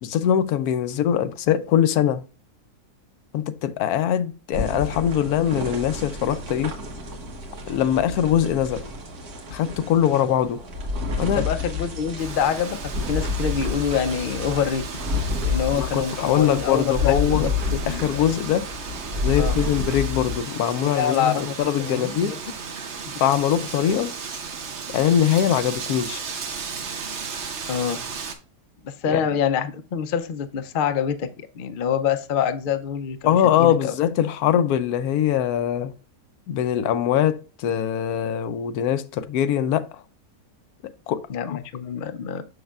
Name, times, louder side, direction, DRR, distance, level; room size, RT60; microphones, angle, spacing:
voice 1, 0.0-2.2 3.3-6.7 7.7-8.8 9.5-10.6 11.2-11.4 15.7-17.5 17.9-18.7 19.2-22.4 23.2-24.1 24.9-26.2 29.1-29.2 33.3-35.9 36.5-40.0 41.1-41.2 41.5-41.6, left 10 dB, 85° left, 1.1 m, -22 dB
sound 1, 4.5-20.4, left 3 dB, 85° right, 1.8 m, -30 dB
voice 2, 11.4-14.8 15.4-18.2 19.4-19.6 20.8-22.4 27.7-28.0 28.8-33.9 41.3-42.4, left 7 dB, 60° left, 0.5 m, -26 dB
Wind, 12.2-28.3, right 5 dB, 55° right, 1.0 m, -35 dB
6.5 x 6.4 x 2.4 m
omnidirectional pair, 1.6 m